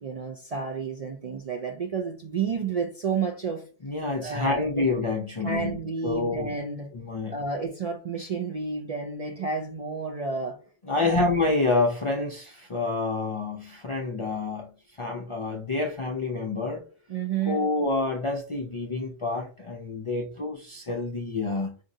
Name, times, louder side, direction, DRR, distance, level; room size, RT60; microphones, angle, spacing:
voice 1, 0.0-3.6 4.2-4.9 5.4-6.9 7.3-10.6 11.0-11.2 17.1-17.7, right 5 dB, 50° right, 0.4 m, -31 dB
voice 2, 3.8-6.5 6.9-7.4 10.9-14.7 15.0-16.9 17.5-21.7, left 3 dB, 45° left, 0.4 m, -28 dB
4.9 x 2.6 x 2.6 m
omnidirectional pair, 1.1 m